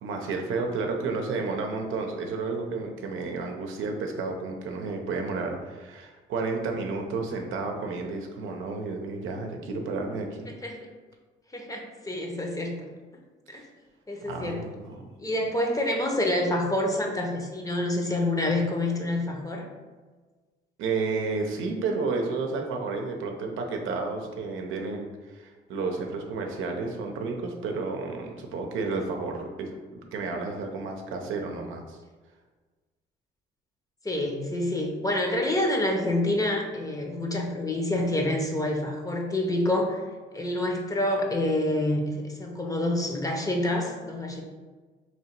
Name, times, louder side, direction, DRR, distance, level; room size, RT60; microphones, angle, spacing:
voice 1, 0.0-10.5 14.2-15.1 20.8-32.0, right 4 dB, 85° right, 3 dB, 0.6 m, -31 dB
voice 2, 10.5-10.8 11.5-12.9 13.5-13.7 14.1-14.7 15.2-19.7 34.0-40.0 40.3-44.4, left 1 dB, 15° left, 1 dB, 0.7 m, -27 dB
3.0 x 2.9 x 4.4 m, 1.4 s
cardioid pair, 90°, 20 cm